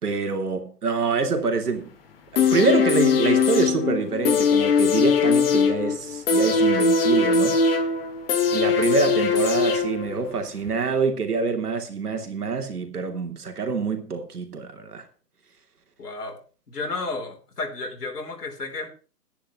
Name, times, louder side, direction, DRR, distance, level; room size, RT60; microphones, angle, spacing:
voice 1, 0.0-1.9 2.3-7.6 8.5-15.0, right 4 dB, 70° right, 3.1 m, -26 dB
sound 1, 2.4-10.3 10.7-10.8, left 5 dB, 35° left, 2.2 m, -21 dB
voice 2, 16.0-16.4 16.7-18.9, left 3 dB, 75° left, 4.1 m, -32 dB
10.5 x 10.0 x 6.0 m
hypercardioid pair, 155°, 47 cm